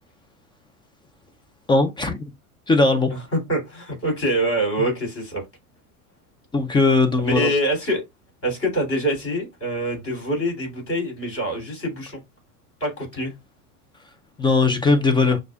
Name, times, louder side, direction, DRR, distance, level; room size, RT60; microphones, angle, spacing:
voice 1, 1.7-2.2 2.7-3.1 6.5-7.5 14.4-15.4, left 3 dB, 10° left, 0.4 m, -18 dB
voice 2, 3.1-5.4 7.2-8.0 8.4-12.2 12.8-13.3, right 1 dB, 30° left, 3.0 m, -25 dB
6.4 x 2.4 x 2.4 m
hypercardioid pair, 85°, 45 cm